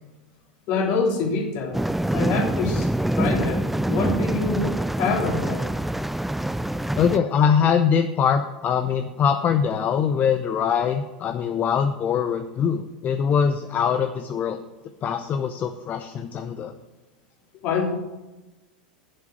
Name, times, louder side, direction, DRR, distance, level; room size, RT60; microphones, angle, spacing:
voice 1, 0.7-1.8 2.1-5.7 17.6-17.9, left 4 dB, 55° left, 0 dB, 3.0 m, -26 dB
sound 1, 1.7-7.2, right 1 dB, 5° right, 0.4 m, -25 dB
voice 2, 6.9-14.6 15.0-16.7, left 7 dB, 35° left, 7 dB, 0.7 m, -23 dB
7.7 x 7.4 x 8.5 m, 1.1 s
hypercardioid pair, 90°, 5 cm